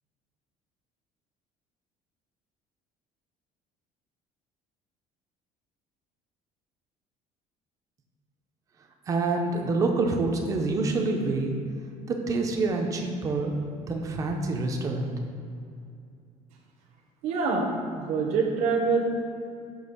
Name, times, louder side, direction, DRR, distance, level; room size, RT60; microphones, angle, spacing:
voice 1, 9.1-11.5 12.1-15.1, right 3 dB, 25° right, 2 dB, 0.5 m, -27 dB
voice 2, 17.2-17.7 18.0-19.0, right 4 dB, 55° right, 0 dB, 0.8 m, -25 dB
6.1 x 2.9 x 5.4 m, 2.5 s
cardioid pair, 180°, 14 cm